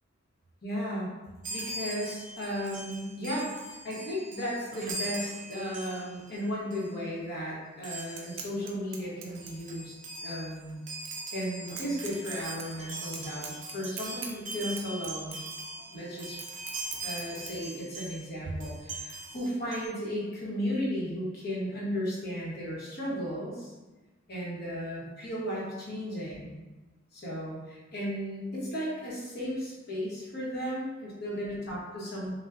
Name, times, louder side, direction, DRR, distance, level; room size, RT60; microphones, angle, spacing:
voice 1, 0.6-1.1 1.5-9.9 10.2-10.8 11.3-15.4 15.9-16.4 17.0-23.7 24.3-26.6 27.1-32.3, equal, 50° left, -5 dB, 1.2 m, -35 dB
Chime, 1.4-6.4 6.7-6.9 7.8-8.4 9.0-9.1 9.3-18.3 18.6-19.9, right 2 dB, 40° right, 0.7 m, -41 dB
sound 1, 8.0-17.5, right 6 dB, 70° right, 0.6 m, -45 dB
5.5 x 2.4 x 2.5 m, 1.2 s
head